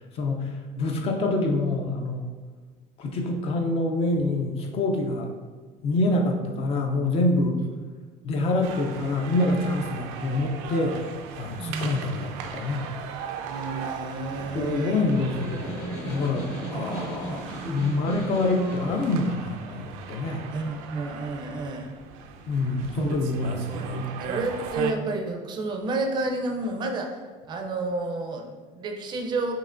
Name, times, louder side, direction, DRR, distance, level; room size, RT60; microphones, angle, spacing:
voice 1, 0.1-2.3 3.0-5.3 5.8-7.6 8.2-11.0 11.4-12.9 14.5-20.4 22.5-24.1, left 2 dB, 35° left, 2 dB, 0.4 m, -26 dB
sound 1, 8.6-24.9, right 6 dB, 85° right, 0.5 m, -38 dB
voice 2, 11.6-12.1 13.5-15.1 16.7-16.8 17.2-17.5 20.5-21.9 23.7-24.0 24.3-27.2 27.5-29.5, right 3 dB, 25° right, 3 dB, 0.4 m, -30 dB
Snare drum, 14.4-19.2, right 1 dB, 60° left, 1.4 m, -37 dB
5.5 x 2.9 x 2.5 m, 1.4 s
cardioid pair, 160°, 17 cm